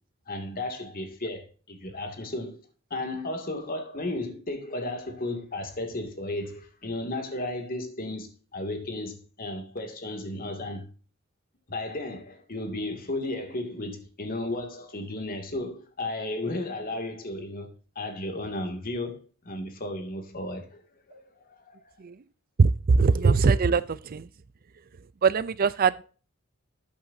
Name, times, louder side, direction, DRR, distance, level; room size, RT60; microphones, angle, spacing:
voice 1, 0.3-2.6 2.9-10.9 11.7-17.7 18.0-20.8 21.1-21.9, left 2 dB, 45° left, 2.3 m, -34 dB
voice 2, 22.6-24.3 25.2-26.0, right 4 dB, 45° right, 0.4 m, -21 dB
13.0 x 8.7 x 2.7 m
head